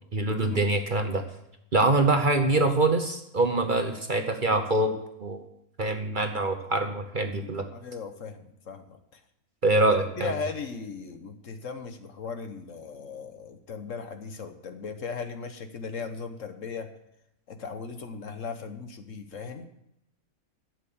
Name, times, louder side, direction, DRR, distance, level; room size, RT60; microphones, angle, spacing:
voice 1, 0.1-1.2 1.7-4.9 5.2-5.4 5.8-7.6 9.6-10.3, right 2 dB, 40° right, 5 dB, 1.0 m, -24 dB
voice 2, 7.7-9.2 10.2-16.9 17.5-19.7, left 5 dB, 60° left, 8 dB, 1.3 m, -37 dB
12.5 x 7.8 x 7.1 m, 0.81 s
omnidirectional pair, 1.6 m